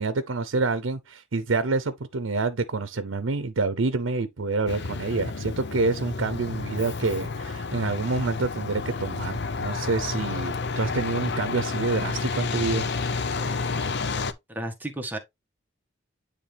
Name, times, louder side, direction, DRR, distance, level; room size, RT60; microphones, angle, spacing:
voice 1, 0.0-12.9, right 3 dB, 90° right, 0.7 m, -27 dB
Truck, 4.7-14.3, left 4 dB, 60° left, 0.7 m, -30 dB
voice 2, 14.5-15.2, right 1 dB, 10° right, 1.4 m, -32 dB
9.8 x 3.3 x 3.4 m
head